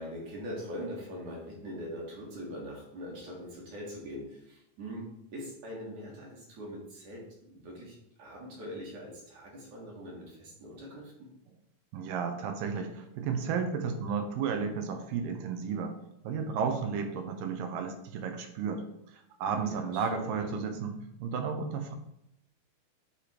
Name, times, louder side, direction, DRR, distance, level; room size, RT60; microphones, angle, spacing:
voice 1, 0.0-11.3 19.4-20.5, equal, 55° right, -3 dB, 2.9 m, -42 dB
voice 2, 11.9-15.9 16.2-18.8 19.4-20.9 21.2-21.9, right 6 dB, 75° right, 6 dB, 2.4 m, -33 dB
10.0 x 3.5 x 4.4 m, 0.79 s
omnidirectional pair, 4.3 m